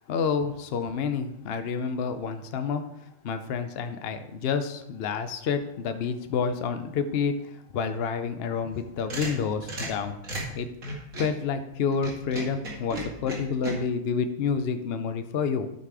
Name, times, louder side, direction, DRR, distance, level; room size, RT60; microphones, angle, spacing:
voice 1, 0.1-2.8 3.2-10.2 10.5-10.7 11.2-15.7, left 6 dB, 80° left, 8 dB, 0.5 m, -29 dB
sound 1, 8.7-11.4 11.9-13.7, right 1 dB, 50° right, 2.3 m, -35 dB
12.0 x 4.2 x 4.8 m, 0.81 s
omnidirectional pair, 1.9 m